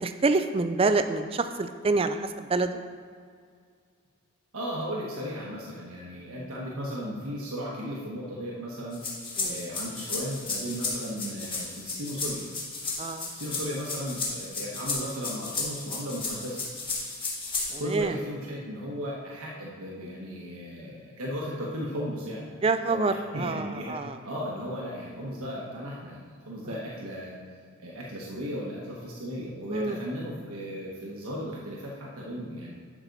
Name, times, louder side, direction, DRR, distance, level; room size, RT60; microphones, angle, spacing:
voice 1, 0.0-2.7 9.4-9.5 13.0-13.3 17.7-18.1 22.6-24.1 29.7-30.0, right 3 dB, 25° right, 9 dB, 0.4 m, -27 dB
voice 2, 4.5-9.0 9.4-12.4 13.3-16.6 17.8-22.5 22.8-24.0 24.2-26.2 26.5-27.3 27.8-32.7, equal, 90° right, -4 dB, 1.3 m, -36 dB
sound 1, 8.9-18.0, left 3 dB, 25° left, 1.7 m, -33 dB
11.0 x 6.0 x 4.0 m, 2.1 s
head